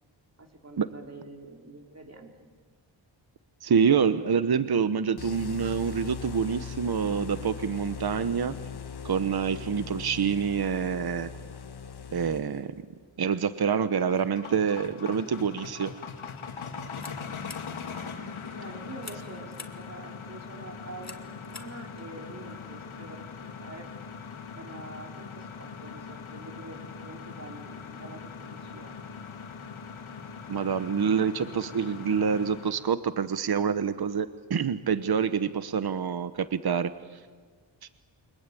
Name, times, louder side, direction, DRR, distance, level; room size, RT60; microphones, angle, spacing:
voice 1, 0.4-2.5 17.9-18.1 18.5-23.9 24.5-28.9, right 2 dB, 35° right, 2 dB, 4.5 m, -46 dB
voice 2, 3.6-8.5 9.0-11.3 12.1-12.7 13.2-15.9 30.5-36.9, right 6 dB, 50° right, 11 dB, 1.1 m, -26 dB
sound 1, 5.2-12.8, left 6 dB, 55° left, 1.2 m, -40 dB
sound 2, 13.5-32.9, left 5 dB, 85° left, 2.3 m, -41 dB
sound 3, 16.5-22.7, left 4 dB, 35° left, 2.1 m, -50 dB
29.0 x 24.0 x 8.6 m, 1.5 s
wide cardioid pair, 95°, 47 cm